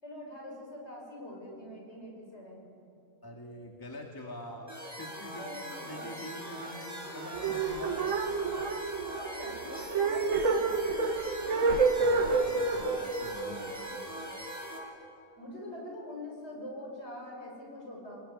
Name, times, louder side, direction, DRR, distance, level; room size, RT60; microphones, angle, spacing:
voice 1, 0.0-2.7 5.4-6.3 9.4-11.7 12.2-12.6 15.4-18.2, left 1 dB, 50° left, -2 dB, 7.2 m, -44 dB
voice 2, 3.2-8.1 11.9-14.2, left 1 dB, 15° left, 0 dB, 2.1 m, -45 dB
sound 1, 4.7-14.8, equal, 10° right, 5.5 m, -42 dB
sound 2, 7.3-14.5, right 4 dB, 65° right, 1.6 m, -29 dB
25.5 x 22.0 x 10.0 m, 2.7 s
omnidirectional pair, 1.4 m